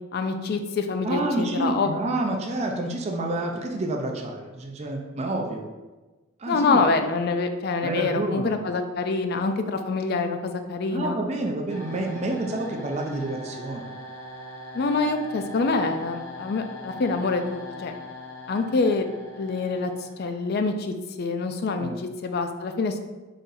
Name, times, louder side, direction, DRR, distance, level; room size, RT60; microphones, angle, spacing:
voice 1, 0.1-1.9 6.5-11.2 14.7-18.0 18.5-19.1 19.4-21.9 22.2-23.0, left 3 dB, 45° left, 7 dB, 0.3 m, -26 dB
voice 2, 1.0-5.6 6.4-6.8 7.8-8.6 10.9-13.9 21.8-22.0, right 2 dB, 30° right, 1 dB, 0.4 m, -28 dB
sound 1, 11.7-20.6, left 1 dB, 65° left, 0.7 m, -41 dB
4.1 x 3.9 x 2.6 m, 1.2 s
head